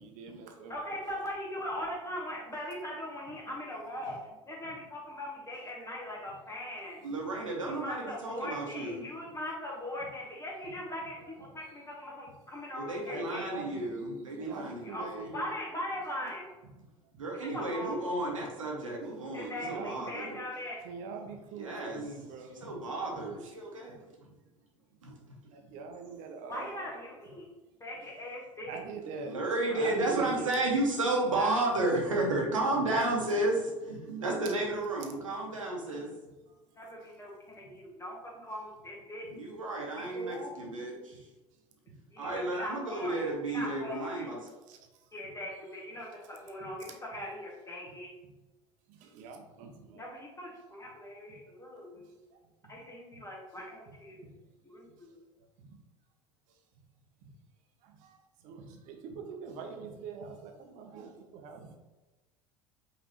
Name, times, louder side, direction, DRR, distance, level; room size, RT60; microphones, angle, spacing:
voice 1, 0.0-1.2 4.6-4.9 10.6-10.9 11.1-11.5 12.3-12.4 12.9-14.0 14.4-15.5 17.1-17.2 17.9-18.0 19.6-20.4 20.8-22.8 23.1-23.4 23.9-24.0 24.3-24.4 25.4-26.9 28.6-29.4 29.7-30.7 34.4-34.7 35.2-35.3 36.5-36.6 37.6-37.8 39.2-39.3 40.6-40.8 41.1-41.2 41.9-42.0 42.2-42.3 44.5-44.8 45.2-45.3 46.6-47.2 47.9-48.0 48.9-50.1 51.3-51.4 52.3-52.7 53.1-53.2 53.9-54.0 54.2-54.3 55.1-55.2 55.6-55.8 57.2-57.4 57.8-58.2 58.4-61.8, right 5 dB, 50° right, 4 dB, 0.8 m, -44 dB
voice 2, 0.7-4.2 4.5-7.0 7.8-13.5 14.8-16.5 17.5-18.0 19.3-20.8 26.5-27.5 27.8-28.8 29.7-29.8 31.4-31.6 36.8-39.2 40.1-40.5 42.1-44.3 45.1-46.9 47.1-48.1 49.9-52.2 52.7-55.2, left 1 dB, 20° left, -3 dB, 1.1 m, -40 dB
voice 3, 7.0-9.0 12.7-15.3 17.2-20.3 21.6-22.1 22.6-24.0 25.0-25.4 29.2-36.1 39.3-41.2 42.2-44.4, right 2 dB, 80° right, -1 dB, 1.0 m, -32 dB
5.1 x 3.0 x 3.0 m, 1.1 s
figure-of-eight pair, 70°, 17 cm